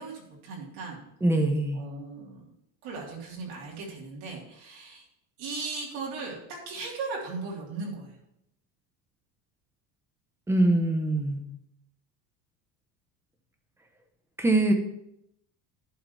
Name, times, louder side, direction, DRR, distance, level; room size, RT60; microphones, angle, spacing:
voice 1, 0.0-1.0 1.7-2.5 2.8-5.1 5.4-8.2, right 4 dB, 65° right, -3 dB, 3.2 m, -37 dB
voice 2, 1.2-1.9 10.5-11.4 14.4-14.7, right 2 dB, 5° right, 5 dB, 0.9 m, -23 dB
11.5 x 3.9 x 6.9 m, 0.79 s
cardioid pair, 155°, 40 cm